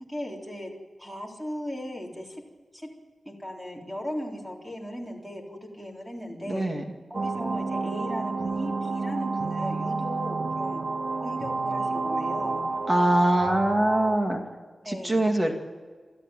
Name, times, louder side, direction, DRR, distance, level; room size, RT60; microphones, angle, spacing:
voice 1, 0.1-0.7 1.0-2.4 2.7-2.9 3.3-6.7 7.1-10.8 11.2-12.7 14.9-15.2, equal, 5° right, 0 dB, 3.9 m, -37 dB
voice 2, 6.5-6.8 12.9-14.4 14.8-15.5, right 1 dB, 25° right, 3 dB, 2.4 m, -23 dB
sound 1, 7.1-14.2, right 3 dB, 60° right, 1.3 m, -30 dB
29.0 x 13.5 x 9.1 m, 1.5 s
wide cardioid pair, 120°, 0 cm